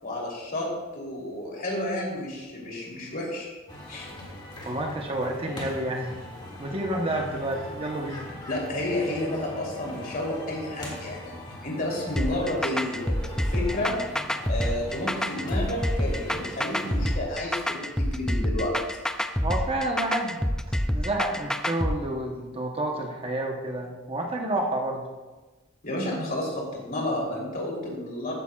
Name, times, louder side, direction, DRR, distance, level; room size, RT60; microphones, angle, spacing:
voice 1, 0.0-3.5 3.9-4.1 8.5-11.3 11.6-14.0 14.5-18.7 25.8-28.3, left 1 dB, 45° left, -2 dB, 3.3 m, -31 dB
sound 1, 3.7-17.2, left 1 dB, 25° left, 2.2 m, -41 dB
voice 2, 4.6-6.2 6.6-8.2 19.4-25.0, right 1 dB, 30° right, 1 dB, 1.0 m, -30 dB
sound 2, 12.2-22.0, equal, 5° left, 0.4 m, -27 dB
14.5 x 11.0 x 2.4 m, 1.2 s
head